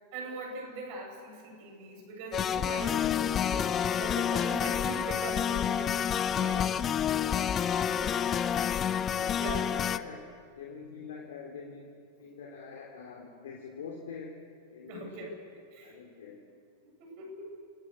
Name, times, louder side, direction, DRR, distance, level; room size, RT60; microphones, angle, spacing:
voice 1, 0.1-6.7 9.4-9.7 14.9-15.3 15.7-15.9 17.0-17.5, right 2 dB, 45° right, 1 dB, 7.9 m, -41 dB
sound 1, 2.3-10.0, left 9 dB, 25° left, 0.7 m, -29 dB
voice 2, 6.9-8.7 9.1-10.2 10.6-11.9 12.2-14.3 14.7-15.4 15.8-16.4, left 5 dB, 60° left, -1 dB, 3.1 m, -45 dB
30.0 x 17.5 x 8.1 m, 2.3 s
figure-of-eight pair, 90°, 0 cm